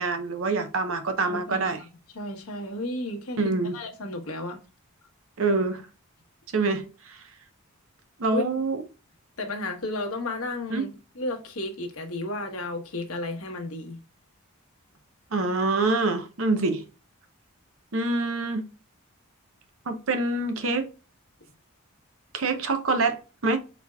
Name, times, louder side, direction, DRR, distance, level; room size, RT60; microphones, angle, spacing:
voice 1, 0.0-1.8 3.4-3.8 5.4-5.8 6.5-7.2 8.2-8.8 10.7-10.9 15.3-16.8 17.9-18.6 19.9-20.9 22.3-23.6, right 3 dB, 70° right, 0.8 m, -26 dB
voice 2, 1.2-1.9 2.1-4.6 8.3-8.4 9.4-14.0, left 1 dB, 85° left, 1.2 m, -33 dB
4.4 x 4.2 x 2.2 m
head